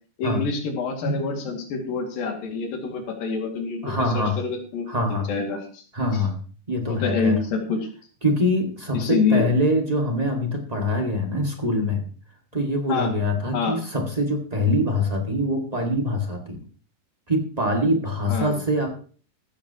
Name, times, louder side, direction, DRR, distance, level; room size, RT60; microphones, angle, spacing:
voice 1, 0.2-5.8 6.1-6.2 6.9-7.8 8.9-9.5 12.9-13.1 13.5-13.8 18.3-18.6, left 5 dB, 90° left, 2 dB, 4.0 m, -26 dB
voice 2, 3.8-4.4 4.9-5.3 5.9-6.4 6.7-7.4 8.2-12.0 12.5-16.6 17.3-18.9, left 1 dB, 20° right, 3 dB, 1.0 m, -24 dB
15.5 x 13.5 x 2.9 m, 0.40 s
omnidirectional pair, 4.0 m